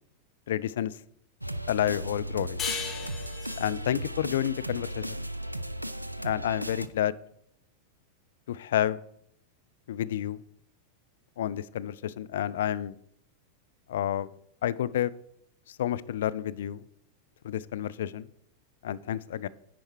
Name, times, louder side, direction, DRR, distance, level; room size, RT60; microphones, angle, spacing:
voice 1, 0.5-0.9 1.7-2.6 3.6-5.1 6.2-7.1 8.5-9.0 9.9-10.4 11.4-13.0 13.9-14.3 14.6-15.1 15.7-16.8 17.4-18.3 18.8-19.5, left 11 dB, 60° left, 16 dB, 0.3 m, -29 dB
sound 1, 1.4-6.9, right 1 dB, 90° right, 0.3 m, -36 dB
sound 2, 2.6-5.8, left 6 dB, 25° left, 1.0 m, -38 dB
10.0 x 4.4 x 4.6 m, 0.72 s
figure-of-eight pair, 90°, 0 cm